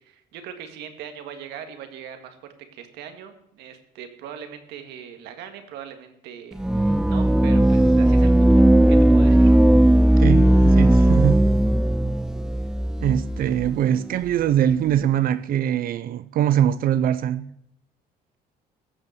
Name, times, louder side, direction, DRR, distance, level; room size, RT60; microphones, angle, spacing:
voice 1, 0.0-2.4 2.7-8.6 8.9-9.5, right 8 dB, 85° right, 1.8 m, -40 dB
sound 1, 6.6-13.8, right 1 dB, 5° right, 0.3 m, -17 dB
voice 2, 10.2-11.6 13.0-17.5, right 10 dB, 60° right, 0.5 m, -22 dB
15.0 x 6.8 x 6.5 m
cardioid pair, 110°, 17 cm